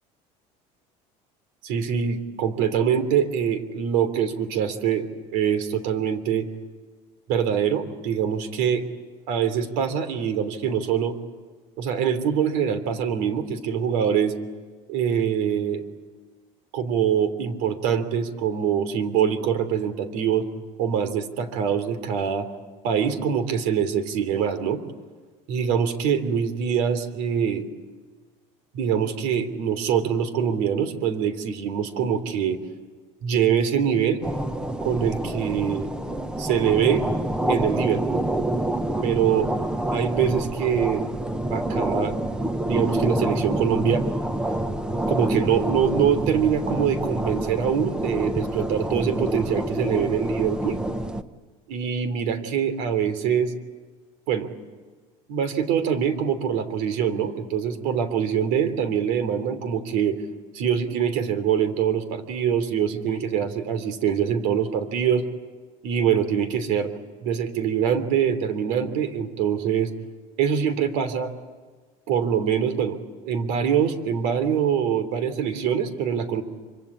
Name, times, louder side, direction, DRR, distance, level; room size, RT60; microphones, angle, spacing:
voice 1, 1.6-6.5 7.3-8.8 9.3-11.2 11.8-14.3 14.9-15.8 16.7-20.5 20.8-22.5 22.8-24.8 25.5-27.7 28.7-32.6 33.2-34.2 34.8-35.9 36.4-37.1 37.5-38.2 39.0-39.5 39.9-41.0 41.5-42.2 42.6-44.1 45.1-50.8 51.7-53.5 54.3-54.5 55.3-60.2 60.5-65.2 65.8-66.9 67.2-69.9 70.4-71.3 72.1-73.0 73.2-76.4, right 8 dB, 75° right, 11 dB, 3.1 m, -24 dB
sound 1, 34.2-51.2, right 1 dB, 5° right, 0.8 m, -27 dB
26.5 x 25.0 x 8.6 m, 1.4 s
cardioid pair, 170°, 14 cm